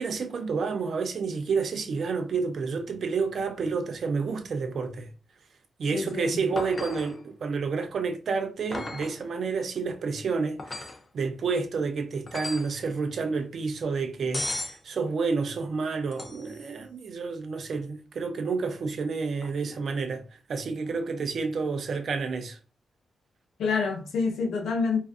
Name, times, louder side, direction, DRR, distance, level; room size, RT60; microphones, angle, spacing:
voice 1, 0.0-5.1 5.8-10.9 11.1-22.6, right 4 dB, 55° right, 0.4 m, -30 dB
voice 2, 5.9-6.4 23.6-25.0, left 4 dB, 80° left, 0.6 m, -27 dB
sound 1, 6.6-7.2 8.7-9.2 10.6-11.0 12.3-12.8 14.3-14.8 16.1-16.6 19.4-19.5, left 2 dB, 25° left, 0.3 m, -35 dB
2.5 x 2.3 x 2.3 m
wide cardioid pair, 155°, 0 cm